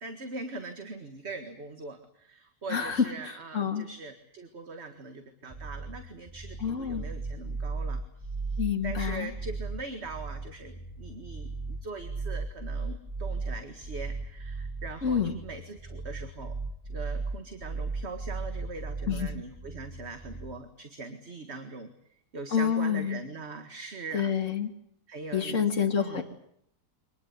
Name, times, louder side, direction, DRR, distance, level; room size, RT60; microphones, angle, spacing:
voice 1, 0.0-16.6 16.8-24.3 25.1-26.2, right 3 dB, 40° right, 7 dB, 2.1 m, -42 dB
voice 2, 2.7-3.8 6.6-7.0 8.6-9.3 15.0-15.3 19.1-19.3 22.5-23.2 24.1-24.7 25.3-26.2, left 7 dB, 45° left, 3 dB, 2.8 m, -28 dB
sound 1, 5.5-20.5, right 3 dB, 15° right, 1.3 m, -36 dB
25.0 x 20.0 x 9.7 m, 0.73 s
omnidirectional pair, 1.9 m